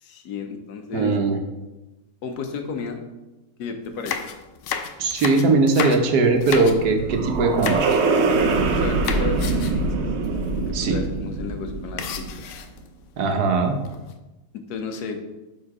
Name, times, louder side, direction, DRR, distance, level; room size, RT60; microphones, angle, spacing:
voice 1, 0.0-1.1 2.2-3.0 3.6-4.2 8.7-9.8 10.5-12.2 14.7-15.2, left 4 dB, 90° left, 5 dB, 1.3 m, -32 dB
voice 2, 0.9-1.4 5.0-7.8 10.7-11.0 13.2-13.8, right 3 dB, 80° right, 4 dB, 1.4 m, -20 dB
sound 1, 3.8-7.1 7.6-8.0 8.3-8.7 9.0-9.9 10.2-10.3 10.6-10.8 12.0-12.9 13.6-14.1, left 7 dB, 70° left, 0.8 m, -32 dB
sound 2, 6.3-12.6, right 3 dB, 60° right, 0.8 m, -24 dB
6.5 x 3.8 x 4.8 m, 1.1 s
omnidirectional pair, 1.6 m